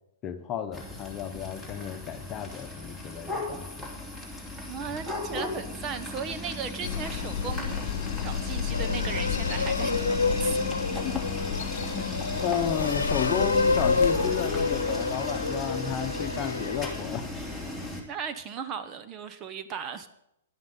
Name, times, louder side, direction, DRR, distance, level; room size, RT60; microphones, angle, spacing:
voice 1, 0.2-3.9 10.9-11.2 11.8-17.3, left 9 dB, 30° left, 8 dB, 1.2 m, -33 dB
sound 1, 0.7-18.0, left 2 dB, 10° right, 3.1 m, -36 dB
voice 2, 4.7-7.8 8.2-10.8 18.1-20.1, right 6 dB, 30° right, 10 dB, 1.1 m, -36 dB
sound 2, 6.8-14.8, left 9 dB, 60° left, 0.7 m, -33 dB
sound 3, 8.7-16.9, left 3 dB, 85° left, 1.0 m, -29 dB
11.5 x 10.5 x 5.5 m, 0.81 s
hypercardioid pair, 115°, 0 cm